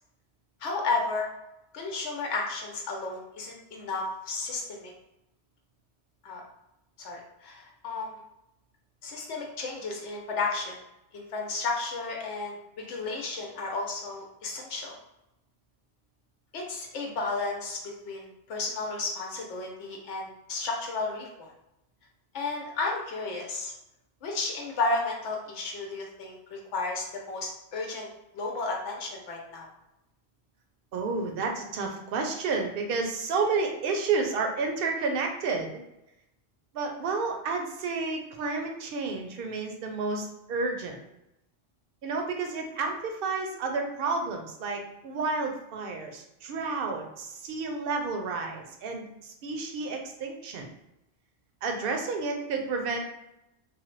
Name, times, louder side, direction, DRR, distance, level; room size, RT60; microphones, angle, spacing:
voice 1, 0.6-1.3 1.7-4.9 6.2-6.4 7.0-8.2 9.0-10.8 11.1-15.0 16.5-17.8 18.0-21.5 22.3-23.7 24.2-28.1 28.3-29.7, left 3 dB, 85° left, 0 dB, 0.9 m, -33 dB
voice 2, 30.9-35.8 36.7-41.0 42.0-50.7 51.6-53.0, right 4 dB, 60° right, 3 dB, 0.7 m, -31 dB
3.2 x 2.0 x 3.1 m, 0.87 s
omnidirectional pair, 1.2 m